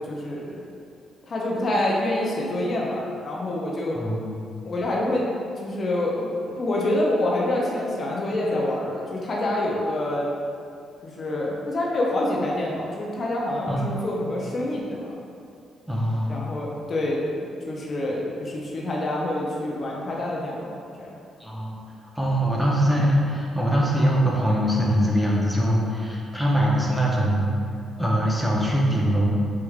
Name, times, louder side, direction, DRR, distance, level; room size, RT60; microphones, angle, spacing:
voice 1, 0.1-0.6 1.3-4.0 4.6-5.3 5.6-10.3 11.0-15.1 16.3-20.7 21.0-21.1, left 1 dB, 45° left, -4 dB, 0.5 m, -26 dB
voice 2, 3.9-4.3 13.7-13.9 15.9-16.4 21.4-21.8 22.2-27.5 28.0-29.3, equal, ahead, -4 dB, 0.6 m, -22 dB
3.3 x 3.1 x 2.3 m, 2.4 s
cardioid pair, 90°, 0 cm